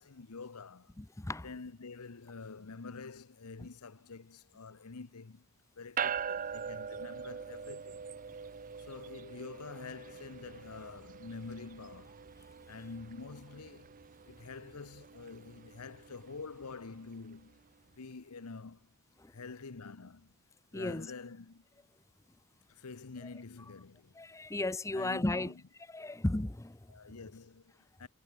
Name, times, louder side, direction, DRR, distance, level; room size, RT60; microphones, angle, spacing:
voice 1, 0.0-0.9 1.4-5.5 5.7-8.0 8.8-12.2 12.7-17.6 18.0-18.9 19.3-20.3 20.7-21.7 22.7-24.2 24.9-25.6 26.9-28.1, left 4 dB, 85° left, 0.9 m, -47 dB
voice 2, 1.0-1.5 19.2-19.3 20.7-21.1 24.2-25.5 25.9-26.9, left 2 dB, 15° left, 0.6 m, -35 dB
sound 1, 6.0-17.5, right 7 dB, 40° right, 0.6 m, -43 dB
head